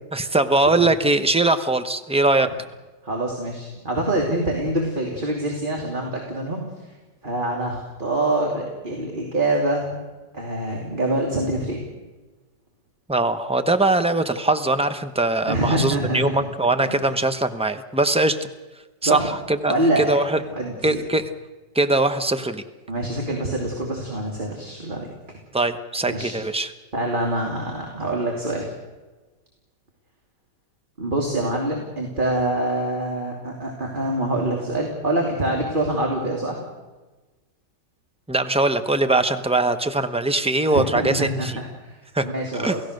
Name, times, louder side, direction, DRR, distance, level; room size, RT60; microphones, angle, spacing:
voice 1, 0.1-2.5 13.1-18.5 19.0-20.4 20.8-21.3 21.7-22.6 25.5-26.7 38.3-41.6 42.1-42.3 42.6-42.8, right 2 dB, 5° right, 9 dB, 0.6 m, -21 dB
voice 2, 3.0-6.6 7.2-10.0 10.3-11.8 15.5-16.3 16.8-17.0 19.0-19.3 19.7-20.1 20.5-21.0 22.9-25.1 26.1-26.3 26.9-28.7 31.0-36.6 40.7-42.8, right 1 dB, 25° right, 0 dB, 3.0 m, -25 dB
29.0 x 17.0 x 6.6 m, 1.2 s
omnidirectional pair, 1.9 m